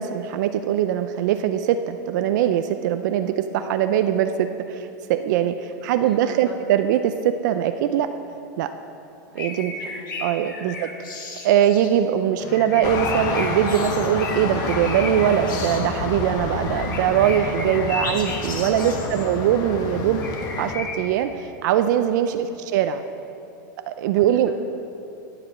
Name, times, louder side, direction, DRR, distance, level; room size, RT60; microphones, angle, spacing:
voice 1, 0.0-8.1 8.6-8.7 9.3-9.7 10.2-11.1 11.4-20.2 20.6-23.0 23.9-24.5, right 10 dB, 65° right, 9 dB, 0.5 m, -22 dB
voice 2, 6.0-6.6 9.3-10.1 18.7-19.3 22.4-22.6 24.3-24.6, equal, ahead, -3 dB, 2.1 m, -45 dB
sound 1, 9.4-11.9 12.5-15.8 16.6-19.3 20.2-21.0, left 3 dB, 90° left, 1.7 m, -34 dB
Guitar, 12.4-20.1, left 7 dB, 60° left, 0.7 m, -40 dB
sound 2, 12.8-20.8, left 4 dB, 40° left, 1.1 m, -29 dB
14.0 x 5.0 x 7.2 m, 2.9 s
supercardioid pair, 130°, 10 cm